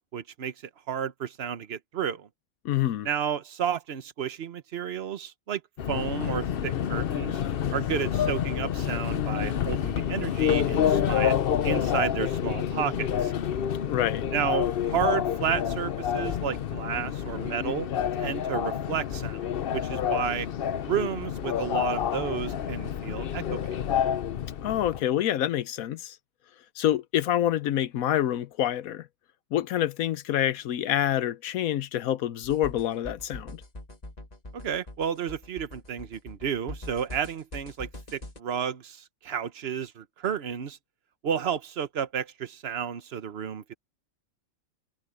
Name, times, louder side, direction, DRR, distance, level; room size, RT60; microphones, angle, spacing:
voice 1, 0.1-0.5 0.9-2.3 3.0-5.6 5.9-7.4 7.7-11.4 11.6-13.3 14.3-17.9 18.2-20.5 20.9-23.8 34.5-40.8 41.2-43.7, right 8 dB, 50° right, 1.1 m, -32 dB
voice 2, 2.6-3.1 13.9-14.3 24.6-26.2 26.8-29.1 29.5-33.6, left 12 dB, 85° left, 1.1 m, -27 dB
Subway metro underground, 5.8-25.0, left 9 dB, 50° left, 0.7 m, -28 dB
sound 1, 32.4-38.4, left 2 dB, 30° left, 1.9 m, -43 dB
omnidirectional pair, 1.5 m